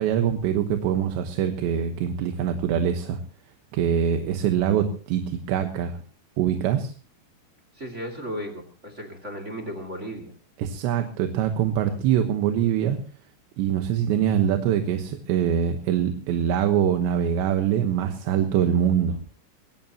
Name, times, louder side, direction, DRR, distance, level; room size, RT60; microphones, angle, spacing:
voice 1, 0.0-3.2 3.7-6.0 6.4-6.9 10.6-13.0 13.6-19.2, right 9 dB, 75° right, 6 dB, 3.4 m, -24 dB
voice 2, 7.7-10.3, equal, 25° right, 6 dB, 1.5 m, -35 dB
22.0 x 18.0 x 2.9 m, 0.38 s
omnidirectional pair, 5.3 m